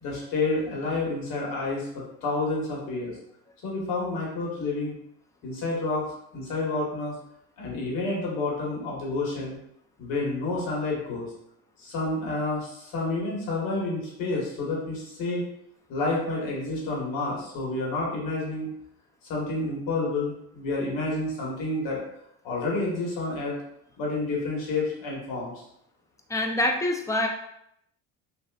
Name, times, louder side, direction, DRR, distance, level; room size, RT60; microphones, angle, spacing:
voice 1, 0.0-3.2 3.6-4.9 5.4-7.1 7.6-9.5 10.0-11.3 11.8-15.4 15.9-18.7 19.3-22.0 22.4-23.5 24.0-25.5, left 2 dB, 75° left, -4 dB, 1.3 m, -29 dB
voice 2, 26.3-27.3, left 1 dB, 10° left, 2 dB, 0.4 m, -25 dB
3.3 x 2.5 x 2.3 m, 0.75 s
supercardioid pair, 85°, 35 cm